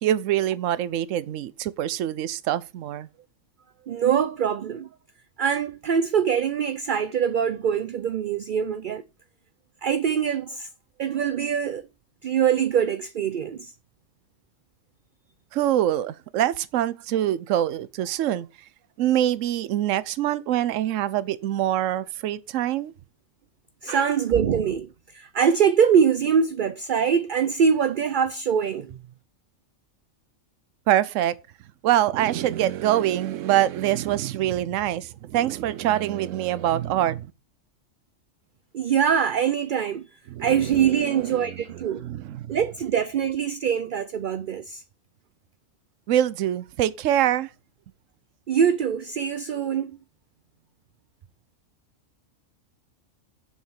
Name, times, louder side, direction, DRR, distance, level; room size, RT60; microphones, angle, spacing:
voice 1, 0.0-3.1 15.5-18.5 19.0-22.9 23.9-24.1 30.9-31.4 31.8-37.3 40.3-42.6 46.1-47.5, right 12 dB, 80° right, 1.0 m, -25 dB
voice 2, 3.9-4.9 5.4-9.0 9.8-10.7 11.0-11.8 12.2-13.7 23.8-29.0 38.7-40.1 40.4-42.0 42.5-44.8 48.5-50.0, right 7 dB, 55° right, 0.6 m, -23 dB
7.4 x 5.7 x 5.8 m
omnidirectional pair, 1.3 m